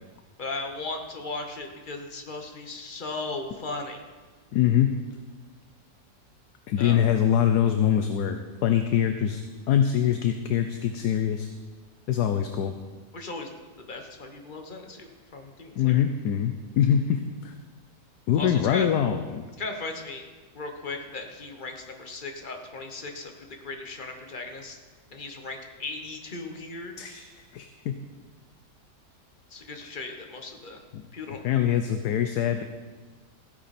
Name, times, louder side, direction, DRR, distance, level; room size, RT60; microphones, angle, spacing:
voice 1, 0.4-4.0 6.8-7.0 13.1-16.0 18.4-18.9 19.6-23.3 23.6-24.8 25.1-26.9 29.5-30.8 31.1-31.4, left 3 dB, 30° left, 4 dB, 1.2 m, -37 dB
voice 2, 4.5-4.9 6.7-9.4 9.7-11.5 12.1-12.7 15.8-17.5 18.3-19.4 27.0-27.2 27.5-28.0 30.9-31.0 31.4-32.6, left 9 dB, 70° left, 7 dB, 1.2 m, -24 dB
15.5 x 10.0 x 4.3 m, 1.4 s
omnidirectional pair, 1.9 m